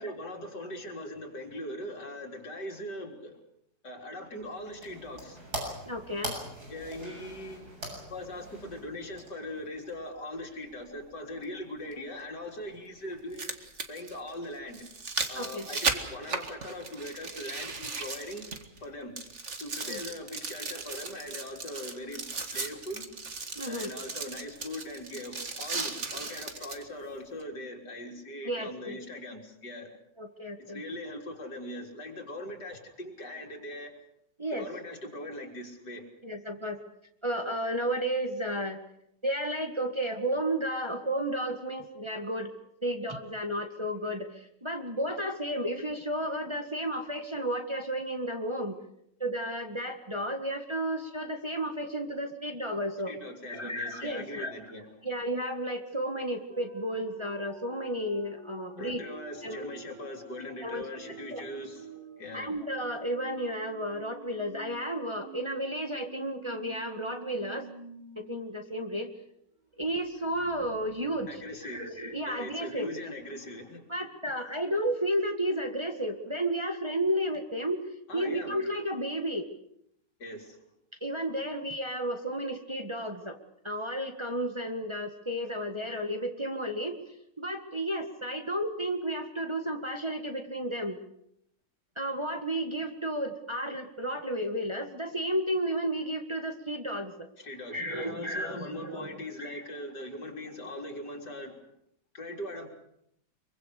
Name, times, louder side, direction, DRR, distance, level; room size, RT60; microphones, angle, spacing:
voice 1, 0.0-3.4 3.8-5.5 6.7-13.5 13.9-14.9 15.3-18.5 18.8-19.1 19.6-22.2 22.5-23.1 23.6-29.9 30.6-33.9 34.5-36.1 53.1-54.9 58.8-62.5 71.3-71.9 72.2-73.9 78.1-78.6 80.2-80.7 97.4-101.6 102.1-102.7, left 1 dB, 75° left, 2 dB, 4.3 m, -40 dB
sound 1, 4.3-9.7, right 1 dB, 60° right, 8.0 m, -42 dB
voice 2, 5.9-6.4 15.3-15.7 19.8-20.0 23.6-23.9 28.4-29.0 30.2-30.8 34.4-34.7 36.2-36.8 37.2-38.8 39.2-42.5 42.8-48.8 49.2-53.1 53.5-54.5 55.0-59.0 59.4-59.7 60.6-60.8 61.3-61.4 62.3-67.7 68.2-69.1 69.8-73.0 73.9-77.8 78.1-79.5 81.0-83.4 83.6-91.0 92.0-97.3 97.7-99.1 99.4-99.6, right 1 dB, 15° right, 4 dB, 1.9 m, -32 dB
sound 2, 9.9-10.0 11.9-12.0 13.1-18.9 19.2-26.8 27.4-27.5, right 4 dB, 40° right, 2.2 m, -36 dB
sound 3, 56.5-69.0 69.3-69.4 69.8-72.5, right 3 dB, 85° right, 5.5 m, -50 dB
24.5 x 24.0 x 6.7 m, 0.74 s
omnidirectional pair, 1.8 m